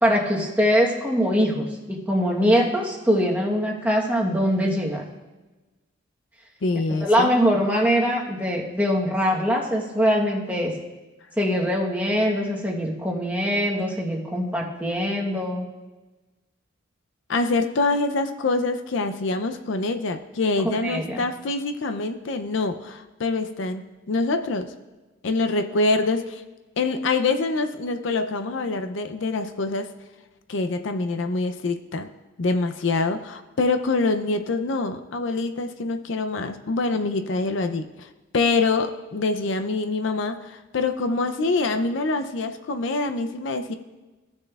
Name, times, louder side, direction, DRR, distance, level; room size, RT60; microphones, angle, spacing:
voice 1, 0.0-5.0 7.0-10.7 11.4-15.6 20.8-21.2, equal, 10° right, -2 dB, 1.0 m, -22 dB
voice 2, 6.6-7.4 17.3-24.7 25.2-26.4 26.8-29.9 30.5-32.1 32.4-43.7, left 3 dB, 65° left, 8 dB, 0.5 m, -25 dB
15.5 x 6.6 x 2.3 m, 1.2 s
head